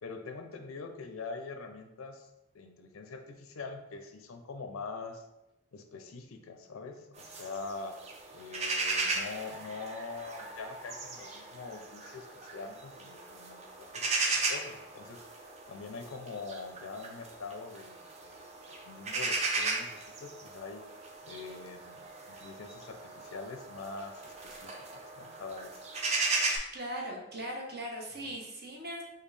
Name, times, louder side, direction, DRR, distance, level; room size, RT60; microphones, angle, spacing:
voice 1, 0.0-2.3 2.5-5.2 5.7-8.0 8.3-15.2 15.7-20.8 21.2-25.8 28.2-28.3, left 4 dB, 90° left, 6 dB, 0.5 m, -44 dB
sound 1, 7.2-26.6, right 3 dB, 30° right, 0.5 m, -37 dB
voice 2, 26.7-29.0, equal, 50° right, -1 dB, 1.0 m, -39 dB
5.1 x 2.3 x 3.3 m, 0.92 s
head